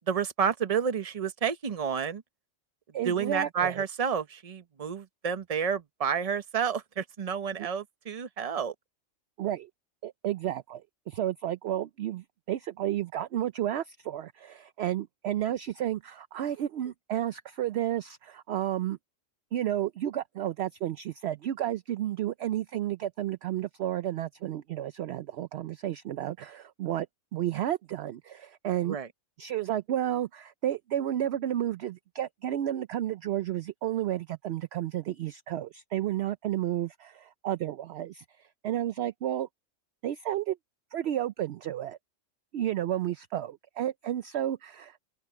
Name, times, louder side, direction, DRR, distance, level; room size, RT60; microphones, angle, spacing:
voice 1, 0.1-2.2 3.0-8.7 28.9-29.1, right 7 dB, 30° right, 0.8 m, -30 dB
voice 2, 2.9-3.8 7.6-7.7 9.4-9.7 10.0-19.0 19.5-27.1 27.3-29.0 29.4-38.2 38.6-39.5 40.0-40.6 40.9-42.0 42.5-45.0, right 12 dB, 65° right, 0.7 m, -32 dB
open air
omnidirectional pair, 1.4 m